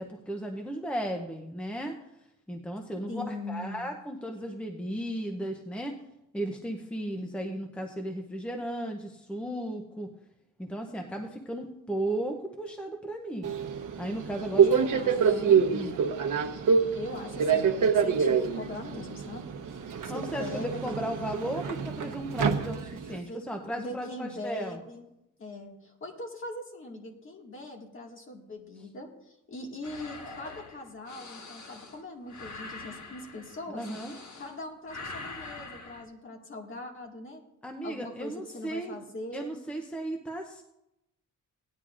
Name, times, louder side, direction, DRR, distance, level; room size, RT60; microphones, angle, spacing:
voice 1, 0.0-2.0 2.5-6.0 6.3-10.1 10.6-13.5 14.0-14.7 15.3-16.0 20.1-24.8 33.7-34.1 37.6-39.0 39.3-40.6, right 1 dB, 5° left, 3 dB, 0.6 m, -35 dB
voice 2, 3.1-3.8 14.6-15.6 17.0-19.8 20.1-21.0 23.1-23.4 23.8-25.0 25.4-33.8 34.4-37.4 37.8-39.6, left 1 dB, 40° left, 0 dB, 1.9 m, -41 dB
Subway metro underground, 13.4-23.2, right 6 dB, 75° right, 0.9 m, -26 dB
sound 1, 29.8-34.6 34.9-36.0, left 3 dB, 60° left, 1.6 m, -44 dB
18.0 x 10.0 x 2.5 m, 0.87 s
wide cardioid pair, 170°, 32 cm